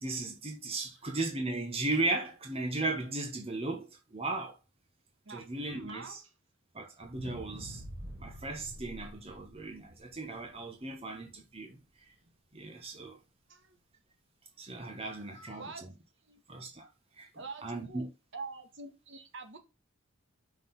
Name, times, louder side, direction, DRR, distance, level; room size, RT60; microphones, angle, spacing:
voice 1, 0.0-4.6 5.3-6.2 6.7-7.8 8.2-11.8 12.5-13.2 14.6-15.7 16.5-16.9 17.2-17.3 17.6-18.1, right 2 dB, 25° right, 1.3 m, -36 dB
voice 2, 5.2-6.2 13.5-13.8 15.0-15.8 16.2-16.4 17.3-18.1 18.3-19.6, right 4 dB, 55° right, 1.5 m, -46 dB
sound 1, 7.0-11.3 11.8-11.9, equal, 75° right, 2.9 m, -47 dB
5.9 x 5.1 x 5.4 m
head